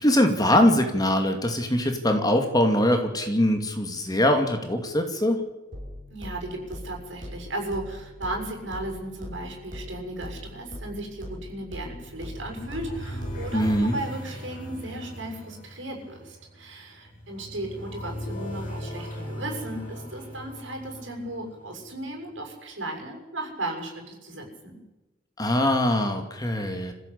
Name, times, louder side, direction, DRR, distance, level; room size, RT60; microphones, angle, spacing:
voice 1, 0.0-5.4 13.5-14.0 25.4-26.9, left 1 dB, 20° left, 5 dB, 2.5 m, -22 dB
sound 1, 5.7-13.7, left 1 dB, 45° right, 5.8 m, -41 dB
voice 2, 6.1-24.8, right 1 dB, 75° right, 2 dB, 6.9 m, -35 dB
sound 2, 11.9-22.0, equal, 45° left, 7.0 m, -38 dB
25.5 x 16.0 x 8.6 m, 1.1 s
head